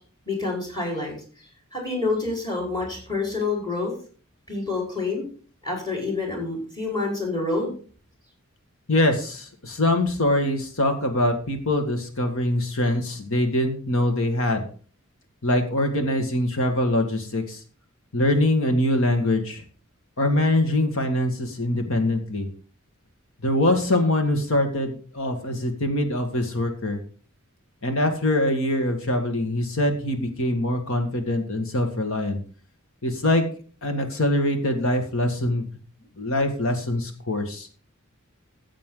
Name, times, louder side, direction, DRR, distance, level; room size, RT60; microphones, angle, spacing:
voice 1, 0.3-1.2 1.7-3.9 4.5-5.2 5.6-7.7, left 3 dB, 20° left, 0 dB, 4.7 m, -27 dB
voice 2, 8.9-14.6 15.4-17.6 18.1-19.6 20.2-22.5 23.4-27.0 27.8-32.4 33.0-33.4 33.8-35.7 36.2-37.7, left 1 dB, 65° left, 6 dB, 1.9 m, -23 dB
14.0 x 7.5 x 3.9 m, 0.41 s
head